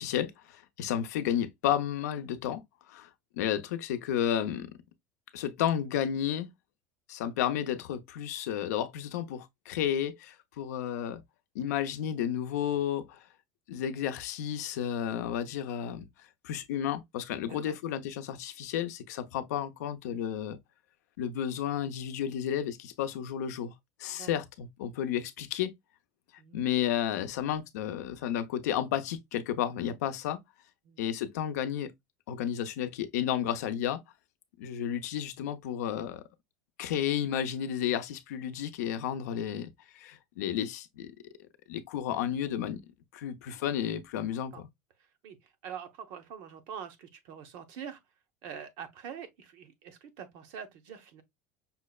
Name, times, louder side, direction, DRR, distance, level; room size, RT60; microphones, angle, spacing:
voice 1, 0.0-2.6 2.9-3.1 3.3-4.7 5.3-6.5 7.1-11.2 11.5-13.2 13.7-16.1 16.4-20.6 21.2-23.7 24.0-25.7 26.5-30.4 31.0-31.9 32.3-34.0 34.6-36.2 36.8-41.1 41.7-42.8 43.1-44.7, left 10 dB, 90° left, 0.5 m, -32 dB
voice 2, 17.5-17.8 24.1-24.3 26.4-26.6 30.8-31.1 44.5-44.6 45.2-48.0 48.4-51.2, right 8 dB, 65° right, 0.9 m, -44 dB
5.5 x 2.1 x 2.2 m
supercardioid pair, 120°, 9 cm